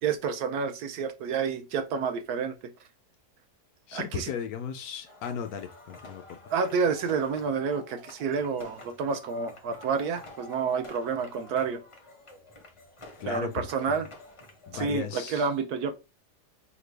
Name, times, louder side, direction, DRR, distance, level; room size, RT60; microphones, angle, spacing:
voice 1, 0.0-2.6 3.9-4.3 6.5-11.8 13.3-14.1 14.7-15.9, right 5 dB, 75° right, 1.1 m, -29 dB
voice 2, 3.9-6.4 13.1-14.0 14.7-15.5, left 8 dB, 70° left, 1.0 m, -36 dB
sound 1, 5.0-14.8, left 2 dB, 30° left, 0.5 m, -49 dB
5.0 x 2.2 x 3.3 m
omnidirectional pair, 1.8 m